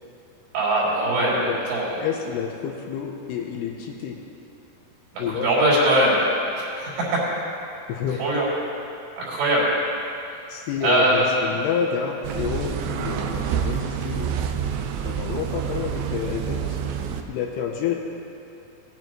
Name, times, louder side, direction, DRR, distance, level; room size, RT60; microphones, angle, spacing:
voice 1, 0.5-2.1 5.1-7.2 8.2-8.5 9.2-9.7 10.8-11.5, right 1 dB, 70° right, -7 dB, 5.2 m, -21 dB
voice 2, 2.0-4.2 5.2-5.5 7.9-8.2 10.5-14.3 15.0-16.8 17.3-17.9, left 7 dB, 80° left, 1 dB, 2.6 m, -29 dB
sound 1, 12.2-17.2, right 8 dB, 90° right, 2.9 m, -28 dB
18.5 x 9.4 x 3.1 m, 2.7 s
omnidirectional pair, 5.1 m